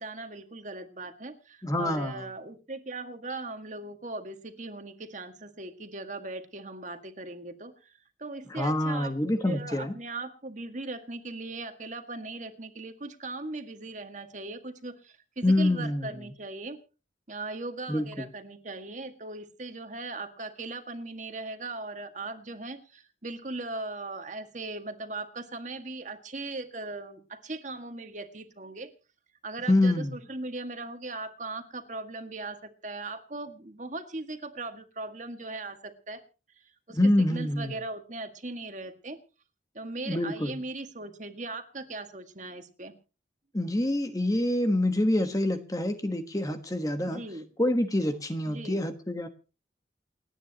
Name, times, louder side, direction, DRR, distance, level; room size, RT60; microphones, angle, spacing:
voice 1, 0.0-16.8 17.3-28.9 29.4-36.2 36.6-39.2 39.7-42.9 47.1-47.5 48.5-48.8, right 2 dB, 40° right, 7 dB, 1.9 m, -39 dB
voice 2, 1.6-2.2 8.5-9.9 15.4-16.1 17.9-18.3 29.7-30.1 36.9-37.7 40.0-40.5 43.5-47.2 47.6-49.3, left 1 dB, 20° left, 8 dB, 1.3 m, -26 dB
29.5 x 9.8 x 2.9 m, 0.33 s
head